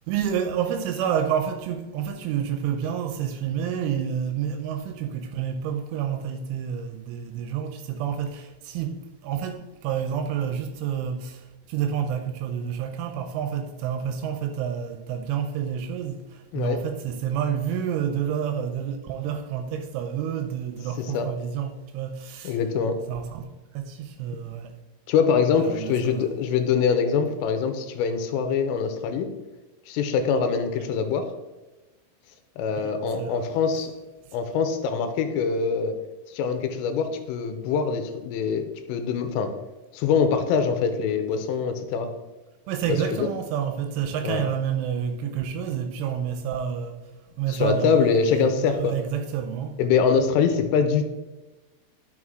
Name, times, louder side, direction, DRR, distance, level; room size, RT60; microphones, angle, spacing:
voice 1, 0.1-22.6 23.1-23.5 23.7-24.8 25.5-26.3 32.7-33.7 34.3-34.4 42.7-47.0 47.4-49.8, right 8 dB, 80° right, 2.9 m, -29 dB
voice 2, 22.4-23.0 25.1-29.3 29.9-31.3 32.6-33.9 34.3-35.9 36.3-39.5 39.9-42.1 43.1-43.3 44.2-44.4 47.5-48.9 49.8-51.1, left 6 dB, 85° left, 3.3 m, -24 dB
11.0 x 6.3 x 3.7 m
omnidirectional pair, 5.9 m